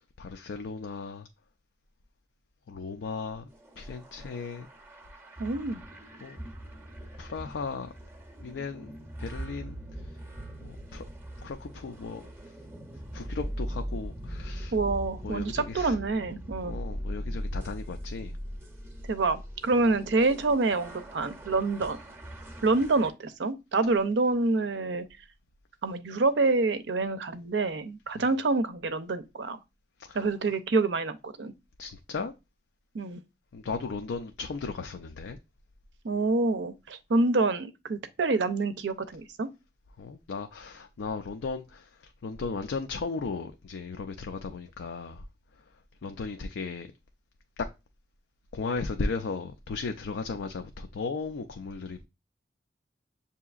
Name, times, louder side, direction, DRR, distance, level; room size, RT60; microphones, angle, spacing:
voice 1, 0.2-1.3 2.7-3.5 3.8-4.7 6.2-6.4 7.2-7.9 8.4-9.8 10.6-11.0 11.4-12.3 13.1-14.7 15.2-15.9 16.6-18.4 28.2-28.3 30.0-30.2 31.8-32.3 33.5-35.4 40.0-45.2 46.0-46.9 48.5-52.0, left 4 dB, 85° left, 0.4 m, -36 dB
sound 1, 3.5-23.1, equal, 10° right, 0.6 m, -40 dB
voice 2, 5.4-5.8 14.7-16.8 19.1-22.0 22.6-25.1 25.8-29.6 30.1-31.5 32.9-33.2 36.0-39.5, right 3 dB, 80° right, 0.5 m, -27 dB
6.9 x 2.8 x 2.4 m
head